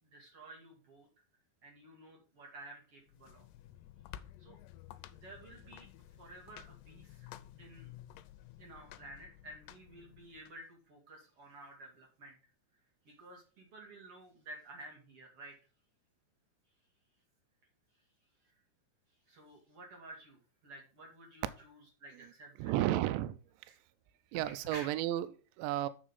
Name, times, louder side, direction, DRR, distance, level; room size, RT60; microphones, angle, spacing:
voice 1, 0.0-1.1 1.6-3.4 4.4-4.6 5.1-5.9 6.2-7.3 7.6-7.9 8.6-12.4 13.0-15.5 18.4-18.5 19.3-22.7 23.6-23.8 24.6-25.0 25.8-25.9, right 2 dB, 40° right, -1 dB, 2.4 m, -52 dB
sound 1, 3.0-10.5, left 13 dB, 85° left, 2.7 m, -53 dB
voice 2, 22.6-23.4 24.3-25.9, right 14 dB, 90° right, 13 dB, 2.8 m, -33 dB
7.5 x 6.5 x 5.3 m, 0.37 s
omnidirectional pair, 5.0 m